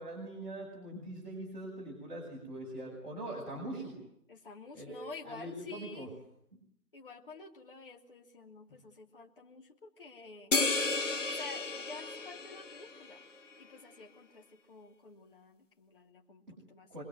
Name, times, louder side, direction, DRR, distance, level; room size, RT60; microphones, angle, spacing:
voice 1, 0.0-4.0 4.7-6.1 6.5-6.6 16.9-17.0, right 1 dB, 30° right, -2 dB, 6.8 m, -42 dB
voice 2, 4.3-6.1 6.9-10.6 11.3-13.2 13.6-17.0, left 3 dB, 35° left, 2 dB, 3.0 m, -50 dB
sound 1, 10.5-13.2, left 3 dB, 50° left, 2.4 m, -33 dB
25.5 x 22.0 x 9.2 m, 0.72 s
figure-of-eight pair, 165°, 46 cm